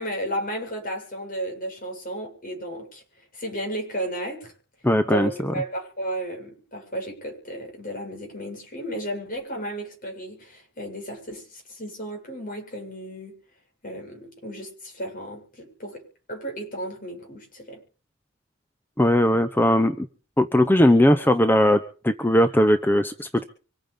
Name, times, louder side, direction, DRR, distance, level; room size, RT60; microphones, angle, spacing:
voice 1, 0.0-3.0 3.3-4.5 5.0-13.3 13.8-16.0 16.3-17.8, right 1 dB, 45° left, 2 dB, 7.4 m, -33 dB
voice 2, 4.8-5.5 19.0-20.1 20.4-23.4, left 1 dB, 10° left, 9 dB, 0.8 m, -19 dB
25.0 x 9.2 x 5.3 m, 0.38 s
head